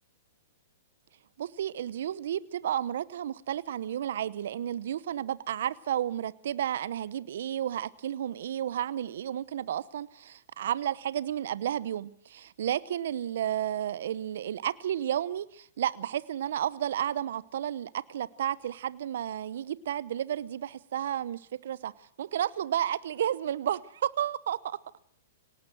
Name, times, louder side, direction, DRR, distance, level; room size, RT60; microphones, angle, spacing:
voice 1, 1.4-21.9 22.2-24.8, right 10 dB, 65° right, 0.9 m, -32 dB
25.0 x 18.5 x 6.2 m
hypercardioid pair, 120°, 0 cm